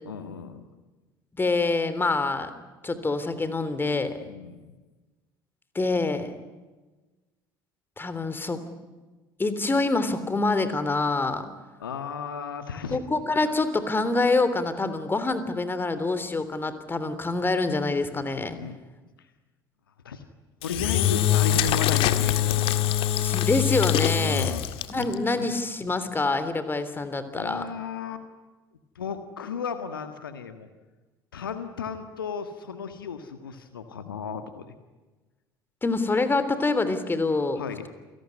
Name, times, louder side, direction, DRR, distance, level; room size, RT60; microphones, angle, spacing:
voice 1, 0.0-0.7 4.3-4.7 11.8-13.0 18.6-18.8 19.2-19.3 20.0-20.2 20.6-22.9 24.2-25.1 25.4-25.5 27.3-28.2 28.9-30.7 31.3-34.7 37.6-37.9, left 6 dB, 80° left, 9 dB, 1.7 m, -35 dB
voice 2, 1.4-2.5 2.8-4.3 5.7-6.3 8.0-8.6 9.4-11.5 12.9-18.6 23.2-24.6 24.9-27.7 35.8-37.6, left 3 dB, 20° left, 11 dB, 3.3 m, -26 dB
Engine / Drill, 20.6-25.1, left 11 dB, 55° left, 1.8 m, -23 dB
28.5 x 18.5 x 9.8 m, 1.2 s
figure-of-eight pair, 60°, 12 cm